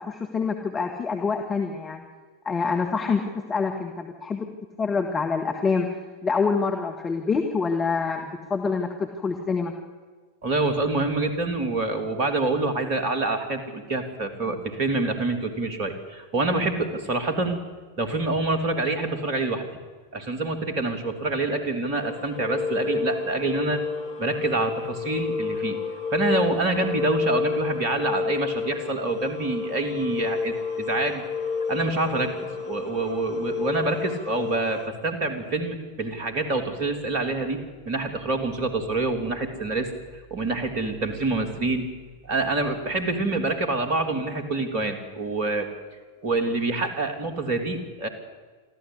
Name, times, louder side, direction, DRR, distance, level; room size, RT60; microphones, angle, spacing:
voice 1, 0.0-2.0 2.5-4.5 4.8-9.7, left 5 dB, 20° left, 3 dB, 1.8 m, -26 dB
voice 2, 10.4-17.6 18.0-19.7 20.1-23.8 24.2-25.8 26.1-31.2 31.7-41.9 42.2-45.7 46.2-48.1, right 2 dB, 45° right, 7 dB, 3.1 m, -26 dB
sound 1, 22.0-34.9, left 5 dB, 55° left, 2.0 m, -30 dB
23.5 x 14.5 x 8.2 m, 1.5 s
figure-of-eight pair, 90°, 0 cm